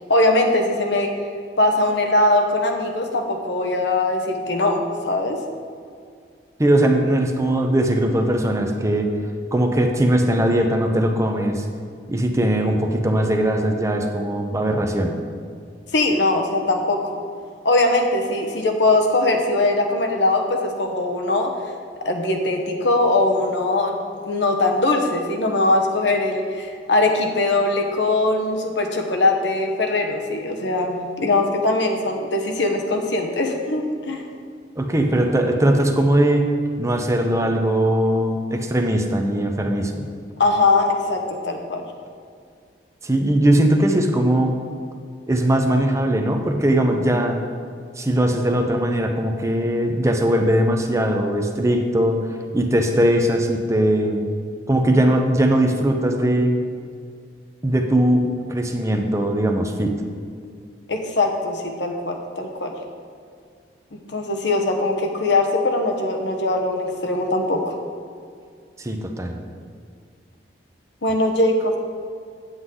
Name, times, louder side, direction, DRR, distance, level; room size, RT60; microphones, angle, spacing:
voice 1, 0.1-1.1 1.6-5.4 15.9-17.0 17.6-21.5 22.0-24.0 24.3-34.2 40.4-41.8 60.9-62.7 64.1-67.7 71.0-71.8, left 2 dB, 75° left, 3 dB, 1.0 m, -21 dB
voice 2, 6.6-9.1 9.5-11.7 12.1-15.2 34.8-36.4 36.8-40.0 43.0-44.5 45.3-47.4 48.0-52.2 52.5-54.2 54.7-56.6 57.6-59.9 68.8-69.3, right 1 dB, 15° right, 4 dB, 0.7 m, -20 dB
9.5 x 8.0 x 3.8 m, 2.2 s
head